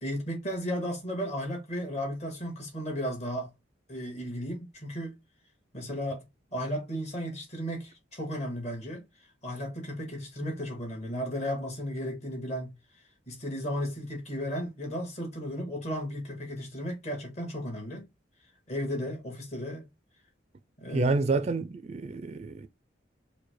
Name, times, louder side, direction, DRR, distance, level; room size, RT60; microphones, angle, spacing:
voice 1, 0.0-3.5 3.9-5.1 5.7-6.2 6.5-9.0 9.4-12.7 13.3-18.0 18.7-19.9 20.8-21.2, equal, 35° left, 1.8 m, -34 dB
voice 2, 20.9-22.7, right 3 dB, 35° right, 0.4 m, -28 dB
4.7 x 2.2 x 4.7 m
head